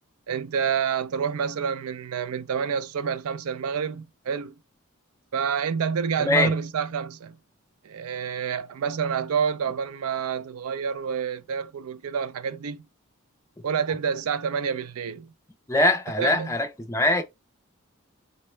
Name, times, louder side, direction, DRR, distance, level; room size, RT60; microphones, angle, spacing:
voice 1, 0.3-4.6 5.3-7.4 7.8-12.9 13.6-15.3 16.2-16.5, right 6 dB, 80° right, 0.4 m, -28 dB
voice 2, 6.2-6.5 15.7-17.2, left 2 dB, 15° left, 0.4 m, -22 dB
3.8 x 2.1 x 3.1 m
head